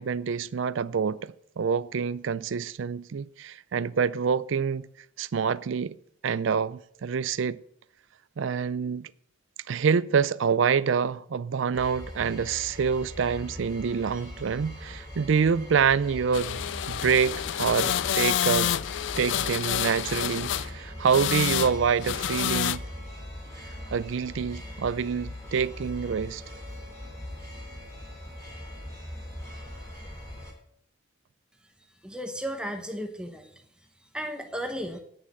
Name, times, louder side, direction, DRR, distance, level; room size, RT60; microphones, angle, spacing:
voice 1, 0.0-4.9 5.2-6.0 6.2-7.6 8.4-9.1 9.7-16.6 16.9-18.7 19.2-22.8 23.9-26.4, right 6 dB, 75° right, 0.4 m, -26 dB
sound 1, 11.7-30.5, left 1 dB, 15° left, 3.6 m, -41 dB
sound 2, 16.3-20.7 21.1-21.8 22.0-22.8, left 10 dB, 70° left, 0.4 m, -28 dB
voice 2, 32.0-33.6 34.1-35.0, equal, 5° right, 0.9 m, -34 dB
9.4 x 6.5 x 7.4 m
head